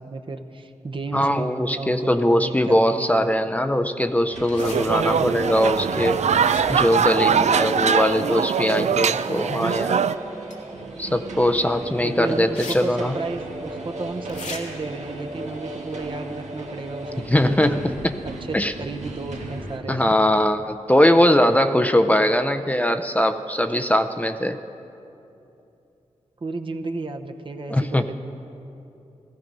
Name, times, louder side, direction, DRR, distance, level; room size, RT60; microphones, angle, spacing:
voice 1, 0.0-3.3 12.0-17.8 18.5-20.2 26.4-28.1, right 3 dB, 45° right, 5 dB, 0.9 m, -33 dB
voice 2, 1.1-6.2 6.7-10.0 11.0-13.1 17.3-17.8 18.5-18.7 19.9-24.6 27.7-28.0, left 1 dB, 10° left, 7 dB, 0.5 m, -21 dB
sound 1, 4.3-19.8, right 2 dB, 90° right, 1.4 m, -36 dB
sound 2, 4.5-4.8 6.3-6.9 10.5-10.6 12.5-12.8 13.1-13.2 14.3-14.6, left 3 dB, 85° left, 1.8 m, -36 dB
sound 3, 4.6-10.2, right 7 dB, 75° right, 0.4 m, -22 dB
15.5 x 14.0 x 5.3 m, 2.8 s
wide cardioid pair, 70°, 12 cm